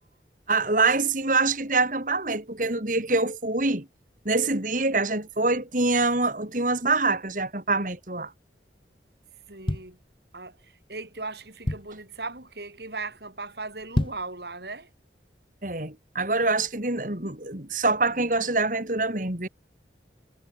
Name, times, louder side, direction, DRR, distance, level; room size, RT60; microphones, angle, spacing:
voice 1, 0.5-3.9 4.3-8.3 15.6-19.5, right 3 dB, 45° right, 3.4 m, -25 dB
sound 1, 9.4-10.6 11.1-11.2 11.4-12.1 12.6-12.9 13.1-13.2 13.8-14.4 14.8-14.9, left 1 dB, 30° left, 1.1 m, -30 dB
voice 2, 9.5-10.0 10.3-14.9, right 3 dB, 65° right, 5.1 m, -38 dB
head